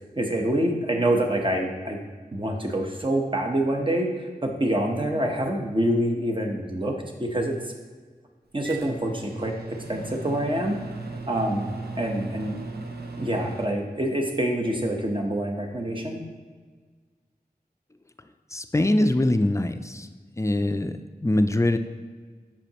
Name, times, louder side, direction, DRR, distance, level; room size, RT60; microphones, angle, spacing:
voice 1, 0.2-2.0 2.3-4.1 4.4-6.9 7.2-7.6 8.5-10.8 11.3-11.7 12.0-12.6 13.2-16.2, right 1 dB, 30° right, 2 dB, 0.9 m, -26 dB
Microwave oven, 8.6-13.7, right 3 dB, 85° right, 0.6 m, -37 dB
voice 2, 18.5-20.1 20.4-21.8, left 1 dB, 20° left, 9 dB, 0.4 m, -23 dB
7.0 x 5.0 x 2.9 m, 1.5 s
wide cardioid pair, 45°, 16 cm